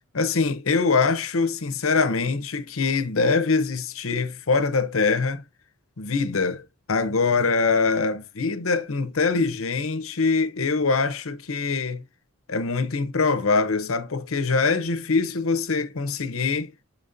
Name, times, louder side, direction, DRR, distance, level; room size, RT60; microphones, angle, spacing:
voice 1, 0.1-5.4 6.0-12.0 12.5-16.7, left 4 dB, 85° left, 0.9 m, -23 dB
7.2 x 5.3 x 2.7 m
head